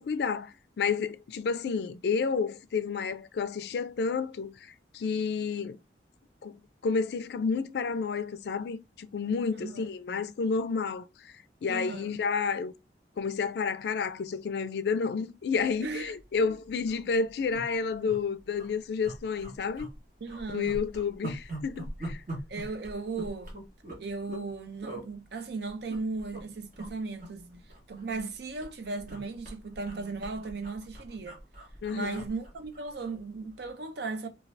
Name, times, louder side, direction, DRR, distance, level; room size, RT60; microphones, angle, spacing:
voice 1, 0.0-5.8 6.4-6.6 6.8-11.4 11.6-12.7 13.2-19.9 20.5-22.2 31.8-32.3, left 5 dB, 65° left, 0.3 m, -30 dB
voice 2, 11.7-12.2 15.8-16.1 16.5-16.6 20.2-20.8 22.5-23.5 24.0-27.6 27.9-31.4 31.9-34.3, right 3 dB, 65° right, 0.5 m, -36 dB
sound 1, 16.0-16.2 16.5-16.6 16.8-17.0 17.5-18.2 18.5-18.7 19.0-20.0 20.3-24.5 24.8-25.1 25.7-26.4 26.7-26.9 27.2-28.3 28.6-33.2 33.5-33.7, right 1 dB, 45° right, 1.0 m, -42 dB
2.6 x 2.3 x 3.1 m
head